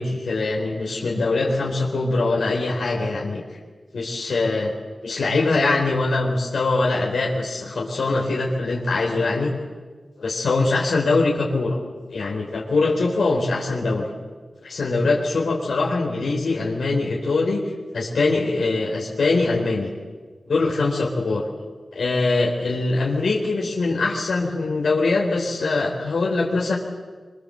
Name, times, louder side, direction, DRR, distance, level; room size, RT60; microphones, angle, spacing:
voice 1, 0.0-3.4 3.9-4.7 5.0-9.5 10.2-11.8 12.1-14.1 14.6-19.9 20.5-21.4 21.9-26.8, left 3 dB, 80° left, -3 dB, 4.6 m, -22 dB
26.0 x 24.5 x 8.1 m, 1.4 s
wide cardioid pair, 85°, 0 cm